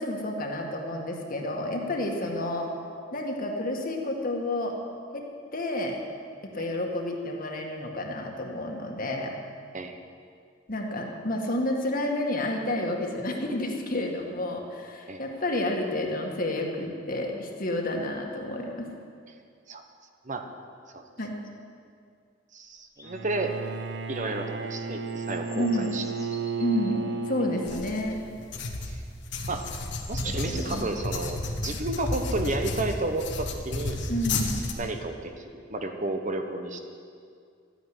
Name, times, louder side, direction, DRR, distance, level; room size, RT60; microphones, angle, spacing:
voice 1, 0.0-2.7 3.1-4.8 5.1-5.2 5.5-6.0 6.5-9.3 10.7-18.9 21.2-21.3 25.5-26.0 26.6-28.2 30.2-30.9 34.1-34.7, left 1 dB, 50° left, 1 dB, 2.0 m, -30 dB
voice 2, 22.5-23.5 24.1-26.0 26.6-26.7 27.4-27.8 28.9-29.0 29.5-29.6 30.1-34.0 34.8-36.8, right 2 dB, 40° right, 5 dB, 1.1 m, -32 dB
sound 1, 23.0-23.2 25.1-27.0 28.9-29.0 29.4-31.4 32.5-32.6, left 2 dB, 20° left, 1.5 m, -48 dB
Bowed string instrument, 23.0-28.3, right 4 dB, 65° right, 0.7 m, -34 dB
sound 2, 27.7-34.7, left 2 dB, 65° left, 1.5 m, -32 dB
13.0 x 9.5 x 9.7 m, 2.2 s
head